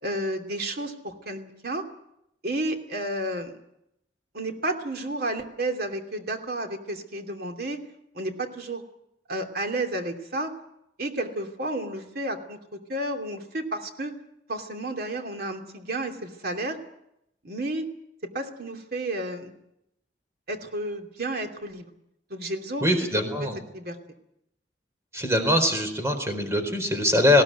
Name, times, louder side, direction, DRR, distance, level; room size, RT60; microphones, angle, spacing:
voice 1, 0.0-1.8 2.4-3.6 4.3-7.8 8.1-8.8 9.3-10.5 11.0-12.6 12.9-14.1 14.5-16.8 17.4-17.9 18.2-19.5 20.5-21.9 22.3-23.5 23.7-24.0, right 1 dB, 60° right, 4 dB, 2.8 m, -31 dB
voice 2, 22.8-23.6 25.1-27.4, left 1 dB, 15° right, 6 dB, 4.3 m, -22 dB
20.0 x 17.0 x 9.2 m, 0.80 s
head